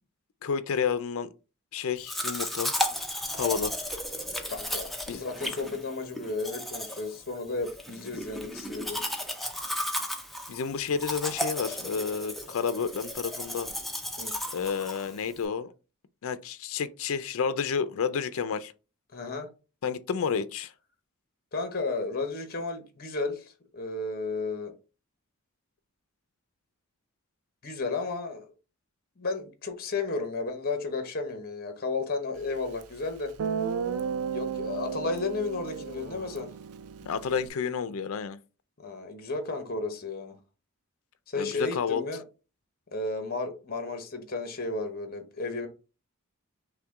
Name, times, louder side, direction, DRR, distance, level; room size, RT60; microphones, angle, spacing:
voice 1, 0.4-1.3 1.7-2.7 3.3-3.7 5.1-5.2 10.5-13.7 14.5-15.7 16.2-18.7 19.8-20.7 37.1-38.4 41.3-42.0, left 6 dB, 65° left, 0.4 m, -30 dB
Domestic sounds home sounds, 2.0-15.4, left 1 dB, ahead, 0.5 m, -34 dB
voice 2, 4.5-9.0 14.2-14.4 19.1-19.5 21.5-24.7 27.6-28.5 29.2-33.3 34.3-36.5 38.8-40.3 41.3-42.2 42.9-45.7, left 3 dB, 45° left, 0.9 m, -33 dB
Guitar, 32.8-32.9 33.4-37.5, right 6 dB, 85° right, 0.4 m, -34 dB
5.6 x 2.2 x 3.5 m
head